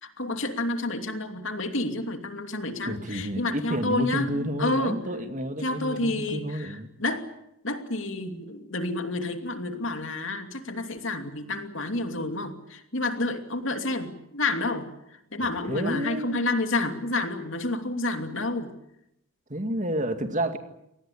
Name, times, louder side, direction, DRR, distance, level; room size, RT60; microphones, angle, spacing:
voice 1, 0.0-5.0 5.6-7.3 7.6-14.9 15.3-18.7, left 2 dB, 65° left, 6 dB, 2.8 m, -29 dB
voice 2, 2.9-6.9 15.4-16.5 19.5-20.6, right 1 dB, 35° right, 7 dB, 2.2 m, -30 dB
26.5 x 19.0 x 8.6 m, 0.82 s
head